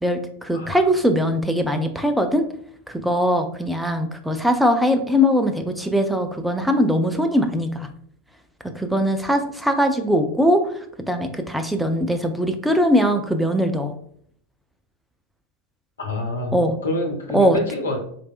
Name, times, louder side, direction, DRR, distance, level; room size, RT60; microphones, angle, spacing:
voice 1, 0.0-2.5 2.9-7.9 8.8-10.7 11.1-13.9 16.5-16.7 17.3-17.6, equal, ahead, 5 dB, 0.4 m, -21 dB
voice 2, 16.0-16.5 16.8-18.0, left 1 dB, 70° left, 1 dB, 1.0 m, -26 dB
4.2 x 3.3 x 2.4 m, 0.63 s
figure-of-eight pair, 90°, 0 cm